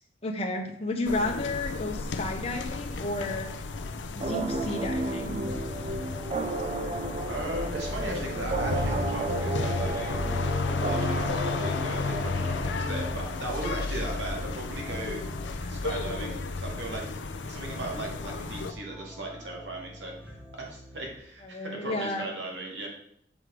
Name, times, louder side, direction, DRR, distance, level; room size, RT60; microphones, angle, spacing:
voice 1, 0.2-3.5 4.1-5.4 21.4-22.3, left 2 dB, 35° left, 1 dB, 1.0 m, -32 dB
sound 1, 1.1-18.7, left 3 dB, 80° left, 0.6 m, -33 dB
sound 2, 2.2-21.2, left 1 dB, 5° right, 1.1 m, -46 dB
sound 3, 4.2-13.6, right 2 dB, 35° right, 0.5 m, -33 dB
voice 2, 7.2-10.3 10.8-15.2 15.7-17.0 17.4-22.9, right 2 dB, 75° right, -1 dB, 2.1 m, -37 dB
7.4 x 4.7 x 5.1 m, 0.66 s
head